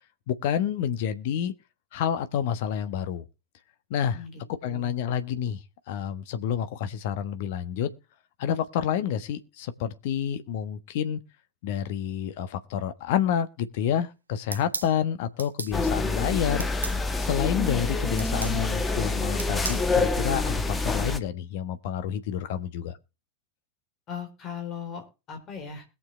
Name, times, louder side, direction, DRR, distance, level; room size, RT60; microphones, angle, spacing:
voice 1, 0.3-1.5 1.9-3.3 3.9-4.2 4.6-7.9 8.4-11.2 11.6-16.7 17.2-23.0, left 9 dB, 50° left, 1.2 m, -29 dB
voice 2, 4.1-5.0 24.1-25.9, left 7 dB, 30° left, 4.2 m, -39 dB
sound 1, 14.5-14.9 15.4-15.7 16.6-17.0 18.2-18.6 19.4-19.8, right 4 dB, 75° right, 0.7 m, -34 dB
sound 2, 15.7-21.2, left 3 dB, 10° left, 1.2 m, -27 dB
21.0 x 7.3 x 3.3 m
figure-of-eight pair, 90°, 0 cm